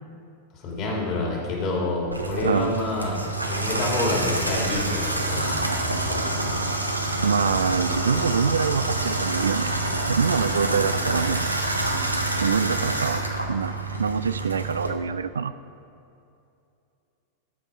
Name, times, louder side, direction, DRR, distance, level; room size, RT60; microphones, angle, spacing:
voice 1, 0.5-3.2 3.5-6.4, left 2 dB, 40° left, -2 dB, 2.7 m, -28 dB
Water tap faucet / Bathtub (filling or washing), 2.1-14.9, right 2 dB, 85° right, 0.8 m, -27 dB
voice 2, 2.4-2.8 7.2-9.8 10.1-11.5 12.4-13.2 13.5-13.7 14.0-15.6, right 6 dB, 70° right, 13 dB, 0.3 m, -25 dB
13.0 x 5.3 x 5.5 m, 2.6 s
figure-of-eight pair, 90°, 0 cm